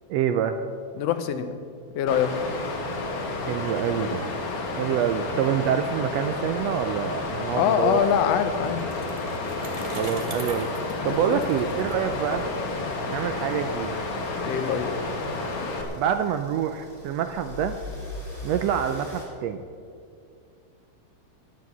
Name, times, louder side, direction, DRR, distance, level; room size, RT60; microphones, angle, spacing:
voice 1, 0.1-0.6 3.5-4.2 4.8-8.0 9.9-10.7 11.0-12.4 13.1-14.0 16.0-17.8 18.4-19.6, right 9 dB, 85° right, 8 dB, 1.5 m, -26 dB
voice 2, 1.0-1.6 1.9-2.3 7.5-8.8 11.0-11.4 14.4-14.9, left 8 dB, 70° left, 9 dB, 1.7 m, -24 dB
Water, 2.1-15.8, left 2 dB, 50° left, 2.1 m, -31 dB
Bicycle, 8.1-12.9, right 2 dB, 35° right, 0.5 m, -41 dB
sound 1, 11.0-19.2, left 2 dB, 15° left, 3.9 m, -42 dB
12.5 x 10.5 x 7.2 m, 2.3 s
omnidirectional pair, 3.5 m